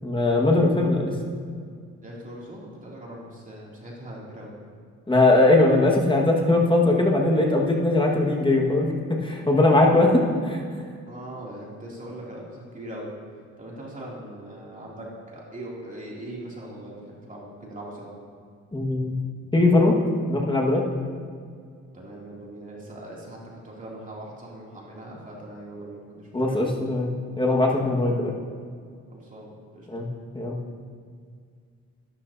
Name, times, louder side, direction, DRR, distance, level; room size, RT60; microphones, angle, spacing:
voice 1, 0.0-1.1 5.1-10.6 18.7-19.1 19.5-20.0 20.3-20.9 26.3-27.1 27.4-28.3 29.9-30.1 30.3-30.6, left 2 dB, 15° left, -1 dB, 1.7 m, -20 dB
voice 2, 2.0-4.5 11.0-13.1 13.6-18.1 21.9-23.4 23.6-26.5 29.1-29.9, right 1 dB, 25° right, -4 dB, 2.8 m, -40 dB
12.0 x 11.5 x 2.8 m, 2.1 s
cardioid pair, 90°, 30 cm